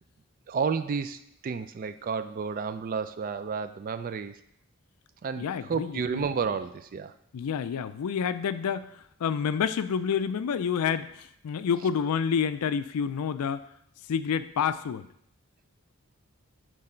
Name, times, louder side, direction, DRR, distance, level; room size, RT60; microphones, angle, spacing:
voice 1, 0.5-4.4 5.2-7.1, right 5 dB, 40° right, 11 dB, 0.3 m, -31 dB
voice 2, 5.4-6.2 7.3-8.9 9.2-13.6 14.1-15.0, left 7 dB, 85° left, 13 dB, 0.4 m, -28 dB
7.6 x 3.4 x 4.4 m, 0.73 s
head